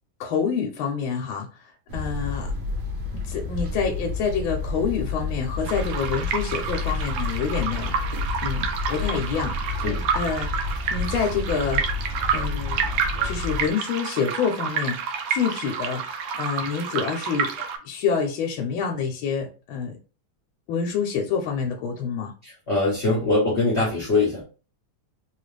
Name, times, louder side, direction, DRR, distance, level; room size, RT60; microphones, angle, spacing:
voice 1, 0.2-1.5 1.9-2.5 3.2-7.9 8.4-9.9 10.1-12.9 13.2-20.0 20.7-22.3, left 6 dB, 85° left, 2 dB, 1.4 m, -27 dB
sound 1, 1.9-13.7, left 3 dB, 70° right, 1.3 m, -30 dB
sound 2, 5.6-17.8, right 6 dB, 85° right, 1.4 m, -29 dB
voice 2, 22.4-24.4, left 2 dB, 40° left, -6 dB, 1.1 m, -22 dB
3.7 x 2.4 x 3.2 m, 0.35 s
omnidirectional pair, 2.1 m